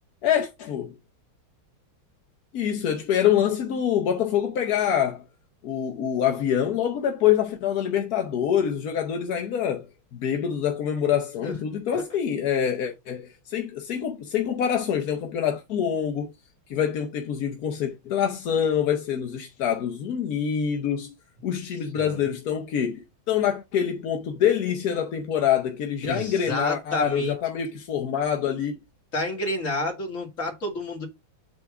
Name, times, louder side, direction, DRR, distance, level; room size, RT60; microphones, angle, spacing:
voice 1, 0.2-1.0 2.5-5.2 5.6-9.9 10.1-16.3 16.7-21.1 21.4-28.7, left 9 dB, 60° left, 1.1 m, -25 dB
voice 2, 26.0-27.3 29.1-31.1, left 1 dB, 40° left, 2.7 m, -29 dB
7.9 x 3.5 x 5.9 m
omnidirectional pair, 2.3 m